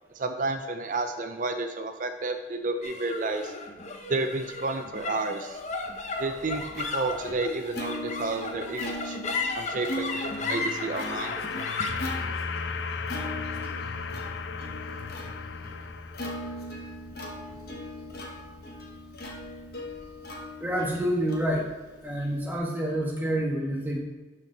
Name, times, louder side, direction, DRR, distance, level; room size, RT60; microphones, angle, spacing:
voice 1, 0.1-3.5 4.1-5.6 6.2-9.2 9.5-11.4, right 3 dB, 45° right, 7 dB, 0.5 m, -31 dB
sound 1, 2.8-19.4, left 3 dB, 40° left, 0.9 m, -36 dB
Plucked string instrument, 5.8-22.6, left 1 dB, 60° left, 1.3 m, -40 dB
sound 2, 9.6-16.8, left 6 dB, 85° left, 0.5 m, -37 dB
voice 2, 20.6-21.7 22.0-24.0, right 1 dB, 10° right, -1 dB, 1.3 m, -28 dB
12.0 x 4.4 x 3.9 m, 1.2 s
head